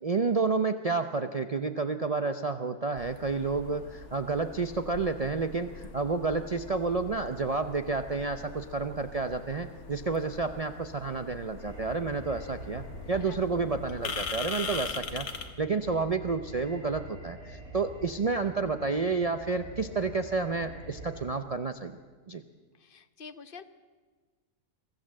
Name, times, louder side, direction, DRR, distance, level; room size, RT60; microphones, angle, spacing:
voice 1, 0.0-15.3 15.6-22.0 22.3-22.4, right 4 dB, 75° right, 8 dB, 0.3 m, -30 dB
sound 1, 3.0-15.5, left 5 dB, 60° left, 1.9 m, -42 dB
sound 2, 11.6-21.3, right 1 dB, 55° right, 3.8 m, -46 dB
voice 2, 13.0-13.4 22.7-23.6, left 5 dB, 45° left, 11 dB, 0.8 m, -47 dB
24.0 x 15.0 x 7.6 m, 1.4 s
omnidirectional pair, 1.8 m